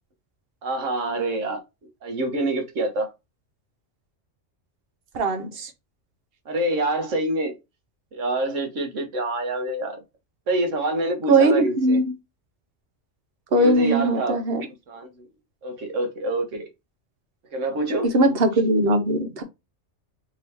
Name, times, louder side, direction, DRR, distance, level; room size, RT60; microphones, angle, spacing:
voice 1, 0.6-1.6 2.0-3.1 6.4-7.6 8.1-10.0 10.5-12.0 13.5-14.4 14.9-15.3 15.6-16.7 17.5-18.1, right 2 dB, 80° right, 1.5 m, -26 dB
voice 2, 5.1-5.7 11.3-12.1 13.5-14.7 18.1-19.4, right 2 dB, 55° right, 1.0 m, -20 dB
3.8 x 2.8 x 3.3 m
omnidirectional pair, 1.3 m